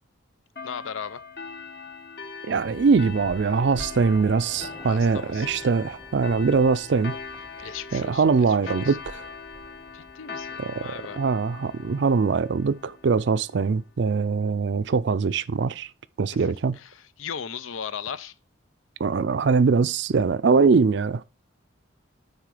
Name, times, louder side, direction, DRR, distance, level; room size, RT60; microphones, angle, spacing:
voice 1, 0.6-1.2 4.8-5.5 7.6-9.0 9.9-11.2 16.3-16.5 16.7-18.3, left 7 dB, 85° left, 0.5 m, -37 dB
sound 1, 0.6-13.6, left 5 dB, 50° left, 1.3 m, -41 dB
sound 2, 2.5-13.3, equal, ahead, 0.9 m, -48 dB
voice 2, 2.5-7.2 7.9-9.3 10.6-15.9 16.2-16.8 19.0-21.2, right 5 dB, 60° right, 0.4 m, -22 dB
9.7 x 3.7 x 4.8 m
head